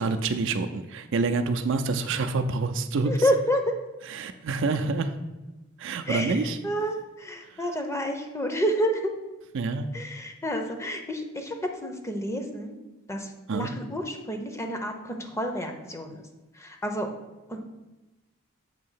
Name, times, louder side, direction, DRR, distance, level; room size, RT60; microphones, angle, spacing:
voice 1, 0.0-3.1 4.1-5.1 5.8-6.6 7.5-7.6 9.5-9.9 13.5-13.7, right 3 dB, 65° right, 8 dB, 0.4 m, -27 dB
voice 2, 3.0-3.7 6.1-9.1 9.9-12.8 13.1-16.3 16.5-17.1 17.5-17.6, equal, 15° left, 4 dB, 0.6 m, -29 dB
7.3 x 2.8 x 5.5 m, 1.1 s
head